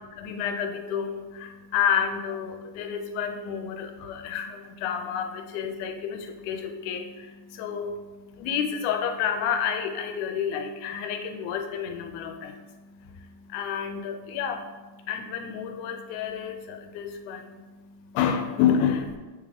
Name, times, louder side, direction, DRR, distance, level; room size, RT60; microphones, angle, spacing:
voice 1, 0.0-19.2, left 8 dB, 80° left, 6 dB, 2.0 m, -30 dB
8.0 x 3.5 x 3.4 m, 1.2 s
omnidirectional pair, 3.7 m